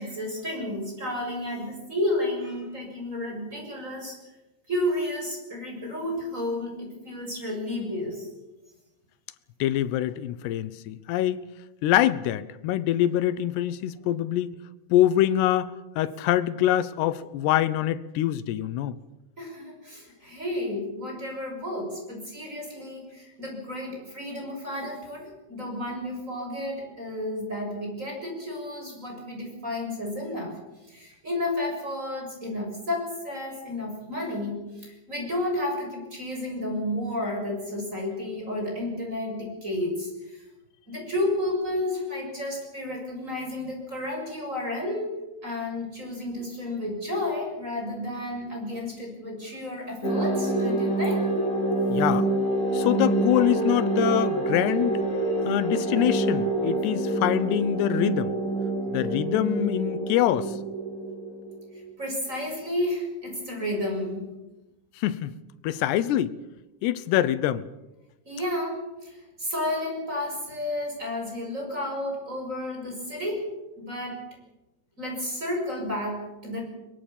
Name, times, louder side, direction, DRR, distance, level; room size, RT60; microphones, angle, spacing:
voice 1, 0.0-4.2 4.7-8.3 19.4-30.5 30.9-40.4 40.9-45.1 45.4-51.2 62.0-64.2 68.3-73.5 73.8-74.2 75.0-76.6, left 1 dB, 15° right, 7.0 m, -31 dB
voice 2, 9.6-11.4 11.8-14.6 14.9-19.0 51.9-52.3 52.7-55.0 55.4-58.4 58.9-60.6 65.0-65.3 65.6-66.3 66.8-67.7, left 13 dB, 75° left, 2.8 m, -24 dB
sound 1, 50.0-61.8, right 2 dB, 20° left, 2.9 m, -26 dB
23.0 x 21.5 x 7.2 m
omnidirectional pair, 5.3 m